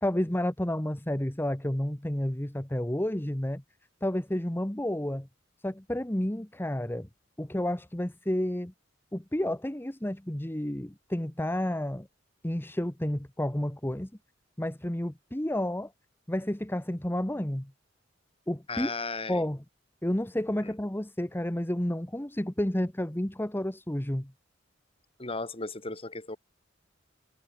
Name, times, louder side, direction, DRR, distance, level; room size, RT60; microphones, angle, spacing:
voice 1, 0.0-3.6 4.0-5.3 5.6-7.1 7.4-8.7 9.1-12.1 12.4-14.1 14.6-15.9 16.3-17.7 18.5-18.9 19.3-19.6 20.0-24.3, left 1 dB, 10° left, 1.1 m, -30 dB
voice 2, 18.7-19.5 20.6-20.7 25.2-26.4, left 3 dB, 30° left, 5.7 m, -35 dB
head